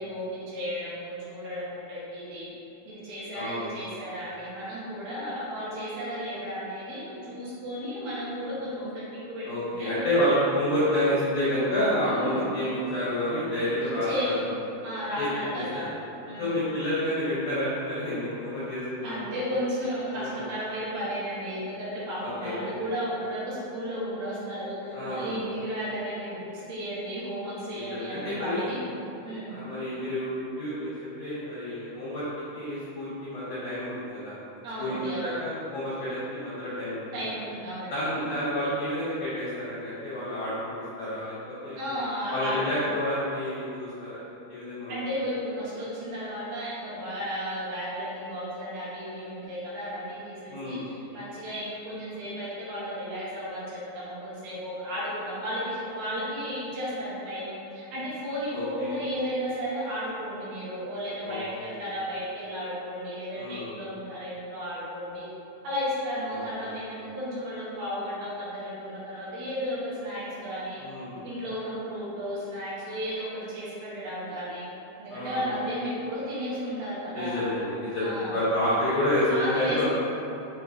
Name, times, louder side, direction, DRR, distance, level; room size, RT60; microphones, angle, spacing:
voice 1, 0.0-2.5 2.9-10.0 12.0-12.4 14.0-14.4 14.8-15.9 16.3-16.6 19.0-28.8 29.2-29.5 34.6-35.3 37.1-38.1 41.8-42.6 44.9-65.2 65.6-70.8 71.2-74.6 75.0-77.4 78.0-78.4 79.3-79.9, equal, 75° right, -9 dB, 2.5 m, -34 dB
voice 2, 3.3-3.7 9.4-14.5 15.2-15.3 15.5-15.8 16.4-19.4 20.1-20.4 22.2-22.5 24.9-25.4 27.7-28.7 29.5-30.9 31.2-32.2 32.5-34.4 34.8-37.3 37.9-40.7 41.0-41.3 41.6-41.8 42.3-44.2 44.5-44.9 50.5-50.8 58.5-58.9 61.2-61.7 63.3-63.7 66.6-66.9 70.8-71.2 75.1-75.5 77.1-79.9, left 1 dB, 80° left, -11 dB, 1.5 m, -29 dB
6.6 x 2.6 x 2.4 m, 3.0 s
omnidirectional pair, 4.1 m